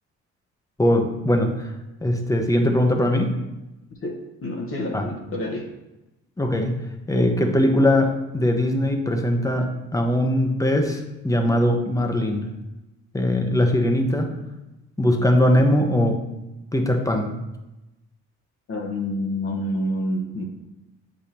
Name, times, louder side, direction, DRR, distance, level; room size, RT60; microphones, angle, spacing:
voice 1, 0.8-1.7 2.0-3.4 4.9-5.1 6.4-6.8 7.1-12.5 13.1-14.3 15.0-16.2 16.7-17.3, left 1 dB, 10° left, 4 dB, 0.9 m, -21 dB
voice 2, 4.0-5.7 18.7-20.5, left 1 dB, 45° left, 1 dB, 1.1 m, -28 dB
7.8 x 5.3 x 2.9 m, 0.98 s
cardioid pair, 90°, 30 cm